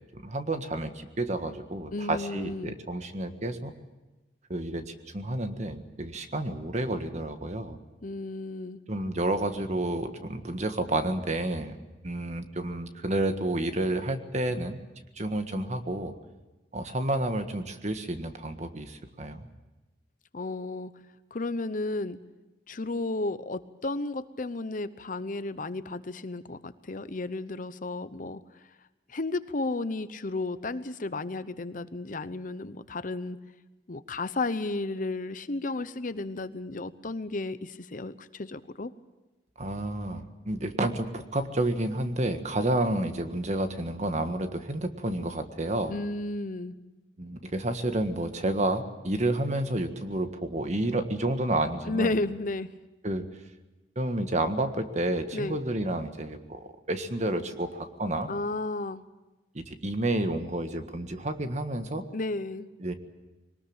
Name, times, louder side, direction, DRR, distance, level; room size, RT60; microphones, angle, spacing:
voice 1, 0.1-3.7 4.5-7.8 8.9-11.7 12.0-14.8 15.2-16.1 16.7-19.5 39.6-45.9 47.2-52.2 53.0-53.3 53.9-58.3 59.5-62.0 62.8-62.9, right 1 dB, 40° right, 8 dB, 1.6 m, -30 dB
voice 2, 1.9-2.8 8.0-8.8 20.3-20.9 21.3-22.2 22.7-28.4 29.1-33.4 33.9-38.9 45.9-46.7 51.9-52.7 55.3-55.6 58.3-59.0 62.1-62.7, left 2 dB, 45° left, 13 dB, 0.8 m, -33 dB
22.5 x 19.5 x 8.8 m, 1.1 s
head